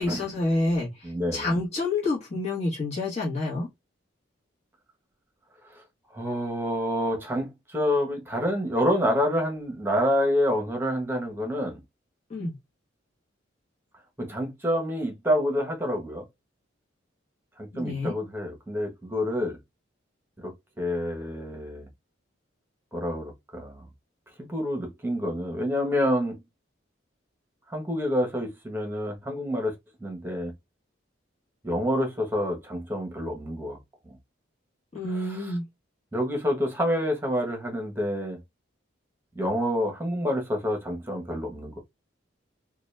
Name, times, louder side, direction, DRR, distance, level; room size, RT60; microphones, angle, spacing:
voice 1, 0.0-3.7 12.3-12.5 17.7-18.1 34.9-35.6, left 2 dB, 35° left, 1.3 m, -28 dB
voice 2, 1.0-1.5 5.7-5.8 6.1-11.8 14.2-16.2 17.6-19.6 20.4-20.5 20.8-21.9 22.9-23.9 24.4-26.3 27.7-29.7 30.0-30.5 31.6-33.8 34.1-34.2 35.1-35.5 36.1-38.4 39.3-41.8, equal, 10° right, 1.2 m, -28 dB
3.9 x 2.4 x 3.3 m
head